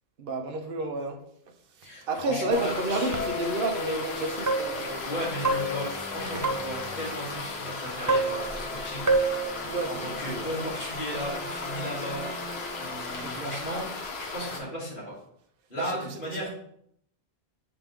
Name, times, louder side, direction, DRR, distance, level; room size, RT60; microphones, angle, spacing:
voice 1, 0.2-1.2 1.7-5.1 6.3-6.4 7.3-7.4 9.6-10.5 13.1-13.6 15.8-16.5, right 2 dB, 60° right, 1.0 m, -32 dB
voice 2, 1.8-3.2 5.0-9.1 10.0-12.3 12.8-15.2 15.7-16.5, equal, 50° left, 2.8 m, -35 dB
sound 1, 2.0-14.4, left 1 dB, 10° left, 1.0 m, -40 dB
sound 2, 2.3-2.7 3.1-3.7 4.5-4.9 5.4-6.9 8.1-8.8 9.1-9.4, right 2 dB, 20° right, 0.6 m, -28 dB
sound 3, 2.5-14.6, left 3 dB, 80° left, 1.1 m, -36 dB
7.3 x 4.0 x 3.6 m
omnidirectional pair, 1.1 m